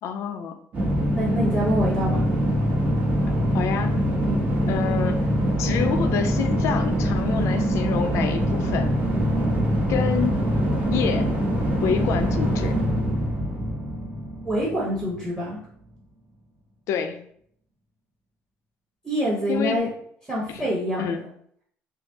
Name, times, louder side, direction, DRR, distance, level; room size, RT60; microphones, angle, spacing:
voice 1, 0.0-0.6 3.5-3.9 4.7-5.2 5.6-8.9 9.9-10.3 10.9-11.3 11.8-12.7 16.9-17.2 19.5-19.8 20.5-20.7 21.0-21.2, left 7 dB, 65° left, 7 dB, 0.5 m, -27 dB
sound 1, 0.7-15.1, equal, 30° right, 1.0 m, -23 dB
voice 2, 0.8-2.2 4.2-4.4 14.4-15.6 19.0-19.9 20.3-21.1, equal, 10° right, -6 dB, 1.2 m, -26 dB
5.1 x 2.0 x 2.8 m, 0.64 s
cardioid pair, 135°, 5 cm